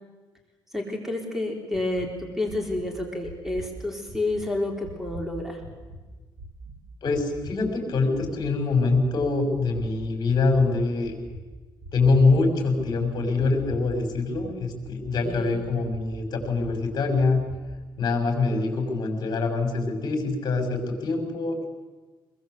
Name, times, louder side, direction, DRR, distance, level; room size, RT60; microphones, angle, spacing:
voice 1, 0.7-5.6 15.2-15.6, left 2 dB, 5° right, 2 dB, 3.8 m, -29 dB
sound 1, 1.7-2.1 2.5-2.9 3.2-3.7 4.1-4.4 4.8-5.3 5.6-6.0 6.4-6.8 7.1-7.5 7.9-8.3 8.7-9.1 9.5-9.9 10.3-10.7 11.0-11.4 11.8-12.2 12.6-13.0 13.4-13.9 14.1-14.6 14.8-15.2 15.6-16.0 16.4-16.8 17.1-17.6, equal, 40° right, 5.3 m, -42 dB
voice 2, 7.0-11.1 11.9-17.4 18.0-21.6, left 3 dB, 50° left, 4 dB, 6.0 m, -24 dB
26.0 x 21.0 x 8.2 m, 1.3 s
cardioid pair, 140°, 9 cm